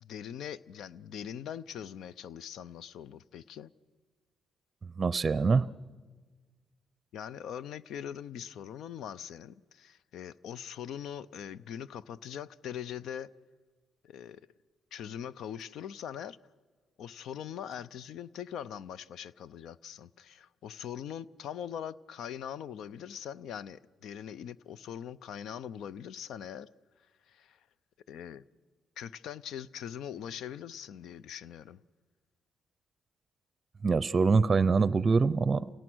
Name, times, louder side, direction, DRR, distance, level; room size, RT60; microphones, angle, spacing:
voice 1, 0.0-3.7 7.1-13.3 14.0-14.4 14.9-16.4 17.0-26.7 27.3-27.6 28.1-28.4 29.0-31.8, left 9 dB, 75° left, 0.6 m, -42 dB
voice 2, 4.8-5.7 33.8-35.7, right 4 dB, 35° right, 0.6 m, -25 dB
28.5 x 17.5 x 6.2 m
cardioid pair, 90°, 0 cm